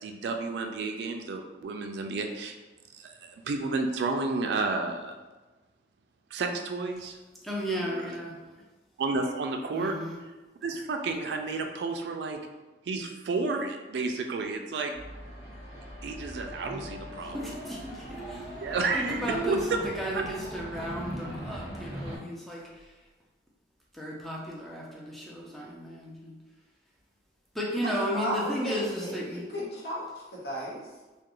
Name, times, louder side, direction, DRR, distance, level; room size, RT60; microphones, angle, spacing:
voice 1, 0.0-2.6 2.9-5.1 6.3-7.2 7.9-8.1 9.0-9.9 10.6-12.4 12.9-15.0 16.0-17.5 18.4-19.6 20.1-20.2, right 3 dB, 70° right, 4 dB, 0.3 m, -31 dB
voice 2, 7.4-8.4 9.7-10.2 17.2-23.1 23.9-26.4 27.5-29.5, equal, ahead, -4 dB, 0.4 m, -34 dB
sound 1, 14.9-22.2, right 1 dB, 35° left, 1.2 m, -39 dB
voice 3, 28.1-30.0 30.3-30.8, equal, 65° left, -6 dB, 0.9 m, -34 dB
2.4 x 2.2 x 2.9 m, 1.2 s
head